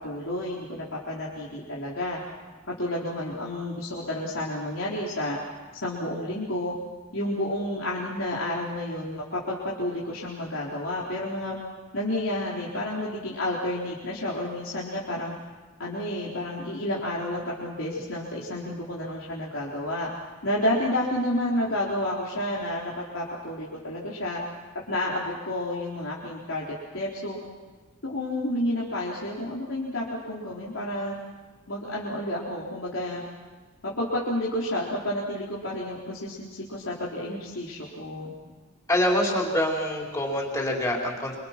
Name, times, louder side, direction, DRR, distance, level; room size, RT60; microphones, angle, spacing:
voice 1, 0.0-2.2 2.7-5.4 5.8-6.7 7.1-11.6 11.9-15.3 15.8-20.1 20.4-24.4 24.9-26.7 26.9-27.4 28.0-31.1 31.7-33.2 33.8-38.3, left 1 dB, 65° left, -6 dB, 4.1 m, -30 dB
voice 2, 38.9-41.4, left 1 dB, 15° left, -2 dB, 4.8 m, -25 dB
27.0 x 26.5 x 6.1 m, 1.3 s
head